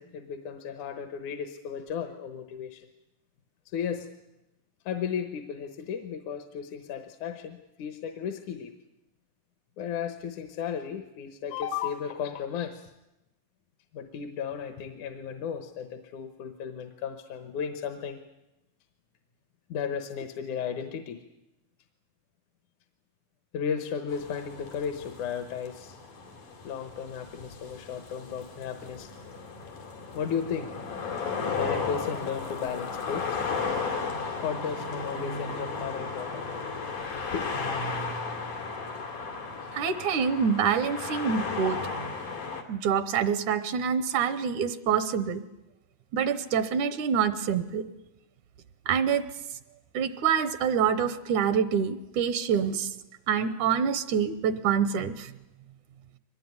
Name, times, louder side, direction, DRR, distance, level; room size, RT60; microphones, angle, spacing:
voice 1, 0.0-2.9 3.7-4.1 4.9-8.7 9.8-12.9 13.9-18.2 19.7-21.2 23.5-26.0 26.6-29.1 30.1-30.7 31.6-33.4 34.4-36.4 37.3-37.5, left 7 dB, 75° left, 7 dB, 2.6 m, -34 dB
sound 1, 24.1-42.6, left 4 dB, 90° left, 4.1 m, -35 dB
voice 2, 39.7-41.8 42.7-45.4 46.1-47.8 48.9-49.2 49.9-52.9 53.3-55.3, right 7 dB, 75° right, 12 dB, 2.4 m, -26 dB
23.5 x 20.0 x 9.7 m, 0.96 s
omnidirectional pair, 3.6 m